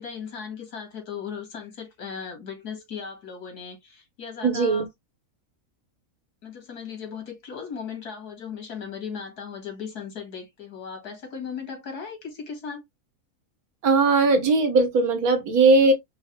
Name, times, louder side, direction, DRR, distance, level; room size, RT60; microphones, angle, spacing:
voice 1, 0.0-4.9 6.4-12.8, left 6 dB, 80° left, 2.5 m, -37 dB
voice 2, 4.4-4.9 13.8-15.9, right 3 dB, 75° right, 1.6 m, -19 dB
5.5 x 2.7 x 3.1 m
omnidirectional pair, 1.6 m